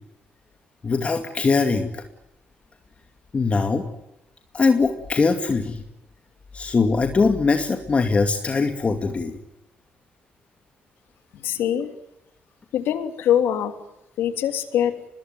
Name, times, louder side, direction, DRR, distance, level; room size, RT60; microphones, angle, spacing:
voice 1, 0.8-2.0 3.3-3.9 4.5-5.8 6.5-9.3, left 4 dB, 35° left, 5 dB, 2.4 m, -21 dB
voice 2, 11.4-11.9 12.7-13.7 14.2-14.9, left 10 dB, 85° left, 8 dB, 3.1 m, -22 dB
24.0 x 21.0 x 9.3 m, 0.86 s
cardioid pair, 85°, 4 cm